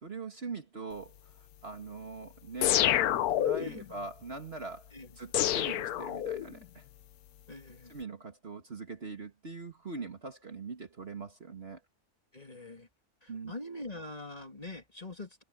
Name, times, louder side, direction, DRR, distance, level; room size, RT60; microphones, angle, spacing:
voice 1, 0.0-2.9 3.3-4.9 5.2-6.8 7.9-11.8 13.3-13.5, right 4 dB, 40° right, 1.9 m, -42 dB
sound 1, 2.6-3.8 5.3-6.6, left 12 dB, 80° left, 1.2 m, -28 dB
voice 2, 3.6-3.9 4.9-5.2 7.5-7.9 12.3-12.9 13.2-15.4, left 2 dB, 25° left, 3.0 m, -44 dB
omnidirectional pair, 1.6 m